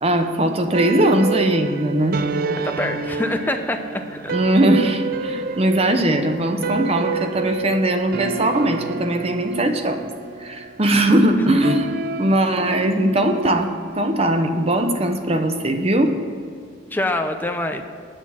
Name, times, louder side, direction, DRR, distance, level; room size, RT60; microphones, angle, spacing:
voice 1, 0.0-2.2 4.3-10.0 10.4-16.1, right 1 dB, 30° right, 6 dB, 0.8 m, -20 dB
sound 1, 0.7-15.2, right 4 dB, 45° right, 0.4 m, -29 dB
voice 2, 2.6-4.4 11.5-11.6 16.9-17.8, left 1 dB, 10° left, 5 dB, 0.6 m, -25 dB
9.7 x 6.2 x 7.4 m, 2.3 s
head